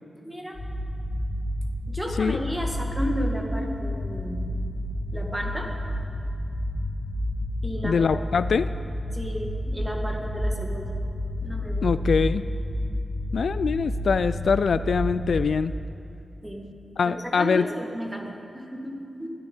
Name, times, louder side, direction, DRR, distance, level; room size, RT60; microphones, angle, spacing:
voice 1, 0.2-0.6 1.9-4.5 5.1-5.7 7.6-8.2 9.1-10.9 11.4-11.9 16.4-16.7 17.1-19.3, equal, 10° right, 1 dB, 1.8 m, -33 dB
sound 1, 0.5-15.4, equal, 35° left, 3.2 m, -30 dB
voice 2, 7.8-8.7 11.8-12.4 13.3-15.7 17.0-17.7, left 5 dB, 65° left, 14 dB, 0.3 m, -23 dB
21.5 x 13.0 x 4.5 m, 2.6 s
wide cardioid pair, 150°, 0 cm